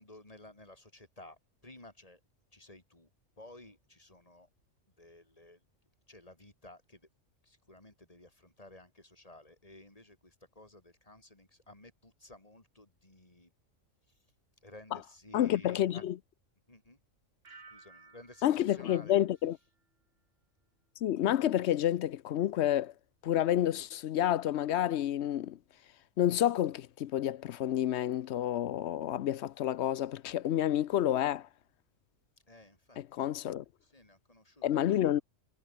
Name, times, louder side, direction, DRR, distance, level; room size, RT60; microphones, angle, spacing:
voice 1, 0.0-2.2 2.5-3.1 3.4-4.5 5.0-5.6 6.1-7.1 7.4-13.5 14.1-14.2 14.6-16.1 16.7-17.0 17.5-19.6 32.5-33.4 33.8-35.2, left 1 dB, 25° left, 3.9 m, -55 dB
voice 2, 15.3-16.1 18.4-19.6 21.0-22.9 23.2-25.6 26.2-31.5 33.0-33.6 34.6-35.2, left 11 dB, 65° left, 0.9 m, -29 dB
sound 1, 17.4-20.3 20.6-21.1, right 4 dB, 50° right, 2.5 m, -59 dB
omnidirectional pair, 1.3 m